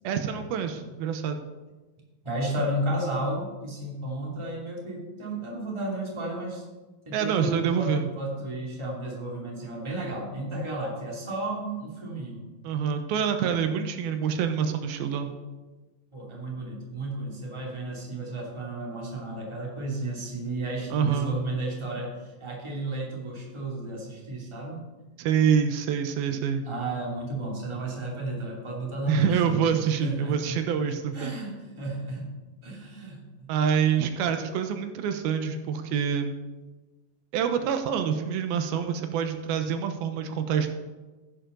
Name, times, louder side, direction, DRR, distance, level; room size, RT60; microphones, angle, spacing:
voice 1, 0.0-1.4 7.1-8.1 12.6-15.3 20.9-21.4 25.2-26.7 29.1-31.3 33.5-36.3 37.3-40.7, right 7 dB, 85° right, 7 dB, 2.8 m, -26 dB
voice 2, 2.2-6.6 7.0-12.4 16.1-24.8 26.6-29.7 30.0-30.6 31.1-32.3 32.6-33.5, right 1 dB, 10° right, -2 dB, 2.4 m, -33 dB
15.5 x 11.5 x 4.0 m, 1.2 s
omnidirectional pair, 4.3 m